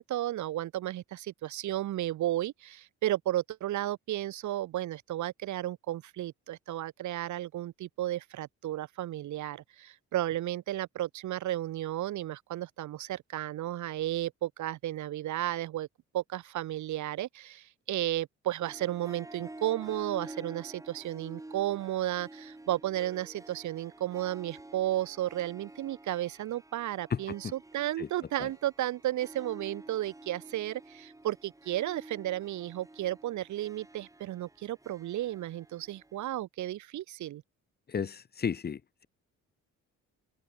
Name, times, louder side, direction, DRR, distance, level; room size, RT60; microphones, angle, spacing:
voice 1, 0.0-15.9 16.1-37.4, right 14 dB, 75° right, 1.1 m, -33 dB
Harp, 18.6-36.2, right 2 dB, 10° right, 3.0 m, -50 dB
voice 2, 37.9-39.1, left 7 dB, 35° left, 0.8 m, -33 dB
open air
cardioid pair, 90°, 30 cm